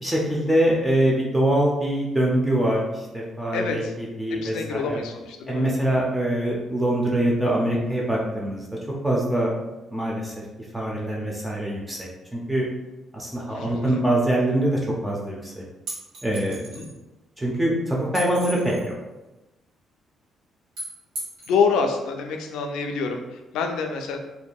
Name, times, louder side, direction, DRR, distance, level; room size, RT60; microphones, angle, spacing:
voice 1, 0.0-5.0 5.5-8.7 9.0-9.5 9.9-10.4 10.7-12.7 13.1-15.6 16.2-16.6 17.4-19.0, right 1 dB, 10° right, -4 dB, 0.5 m, -24 dB
voice 2, 3.5-3.9 4.3-5.7 13.5-14.0 16.7-16.9 21.5-24.2, left 5 dB, 90° left, 4 dB, 0.3 m, -26 dB
sound 1, 15.9-16.9 18.1-18.9 20.8-21.6, right 1 dB, 90° right, 1.2 m, -36 dB
2.6 x 2.5 x 2.2 m, 1.0 s
cardioid pair, 90°, 0 cm